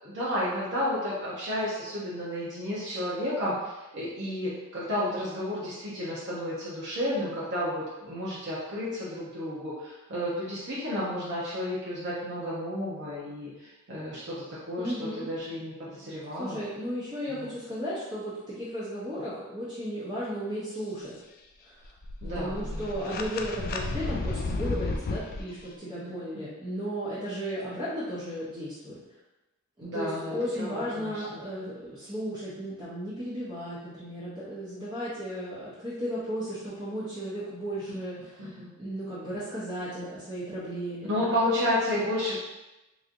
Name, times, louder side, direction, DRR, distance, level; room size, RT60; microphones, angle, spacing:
voice 1, 0.0-14.3 14.7-16.6 17.3-17.5 22.2-23.0 26.0-26.2 29.8-31.4 38.4-38.7 41.1-42.3, left 1 dB, 60° right, -8 dB, 0.9 m, -32 dB
voice 2, 14.8-15.3 16.4-21.1 21.6-21.8 22.3-29.0 29.8-38.5 38.8-41.3, equal, 20° right, -11 dB, 0.8 m, -35 dB
sound 1, 21.8-25.4, left 3 dB, 45° left, 0.3 m, -32 dB
3.8 x 3.1 x 2.6 m, 1.0 s
head